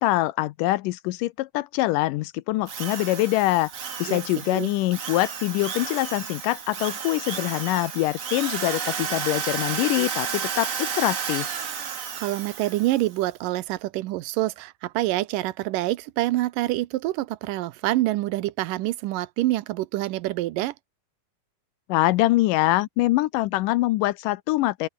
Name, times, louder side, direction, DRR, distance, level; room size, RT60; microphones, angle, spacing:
voice 1, 0.0-3.7 4.0-11.5 21.9-24.9, left 18 dB, 85° left, 2.3 m, -24 dB
Drill, 2.7-13.1, right 7 dB, 70° right, 0.7 m, -32 dB
voice 2, 12.2-20.7, right 17 dB, 85° right, 2.5 m, -26 dB
open air
omnidirectional pair, 3.7 m